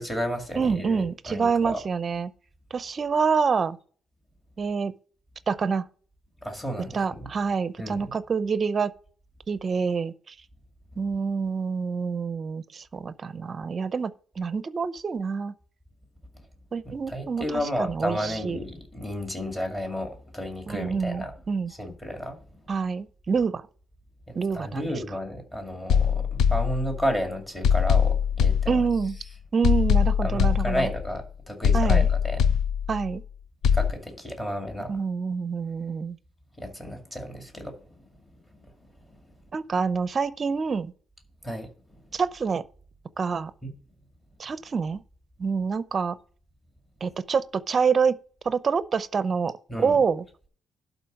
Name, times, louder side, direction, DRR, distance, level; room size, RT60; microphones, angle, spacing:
voice 1, 0.0-1.8 6.4-7.3 7.8-8.1 17.1-21.3 21.7-22.6 24.3-28.8 30.2-32.4 33.7-35.0 36.6-38.0 41.4-42.0 43.6-43.7 49.7-50.0, equal, 10° left, 2.1 m, -32 dB
voice 2, 0.6-2.3 2.7-3.8 4.6-4.9 5.5-5.9 6.9-8.9 9.5-10.3 11.0-15.5 16.7-17.5 17.8-18.6 20.7-21.7 22.7-23.6 24.3-24.9 28.7-29.2 29.5-30.9 31.7-32.1 32.9-33.2 34.9-36.2 39.5-40.9 42.1-42.6 43.2-43.5 44.4-45.0 45.4-46.2 47.0-48.2 48.4-49.5 49.8-50.2, right 5 dB, 30° right, 0.6 m, -26 dB
sound 1, 25.9-27.2 27.6-29.2 29.6-31.2 31.6-33.2 33.6-33.9, left 7 dB, 75° left, 0.6 m, -22 dB
11.5 x 4.0 x 6.3 m
cardioid pair, 170°, 0 cm